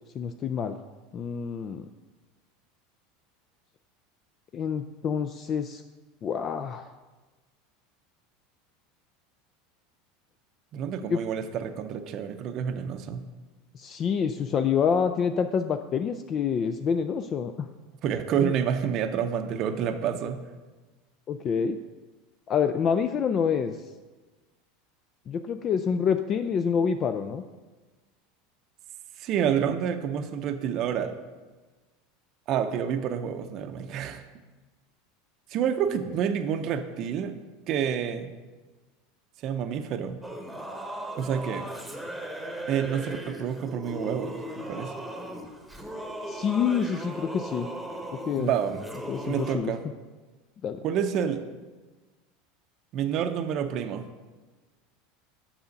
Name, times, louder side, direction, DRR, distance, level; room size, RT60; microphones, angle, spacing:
voice 1, 0.1-0.8 1.1-1.9 4.5-5.8 6.2-6.9 11.1-11.2 13.7-17.7 18.4-18.5 21.3-21.8 22.5-23.8 25.3-27.4 46.3-47.7 48.3-48.5 49.1-49.7 50.6-50.8, left 7 dB, 40° left, 8 dB, 0.4 m, -27 dB
voice 2, 10.7-13.3 18.0-20.4 29.2-31.1 32.5-34.2 35.5-37.4 37.7-38.3 39.4-40.2 41.2-41.7 42.7-44.9 48.4-48.8 49.3-49.8 50.8-51.5 52.9-54.1, right 8 dB, 50° right, 7 dB, 0.6 m, -28 dB
Singing / Musical instrument, 40.2-49.6, right 1 dB, ahead, 1.2 m, -38 dB
7.0 x 5.6 x 5.2 m, 1.3 s
hypercardioid pair, 100°, 0 cm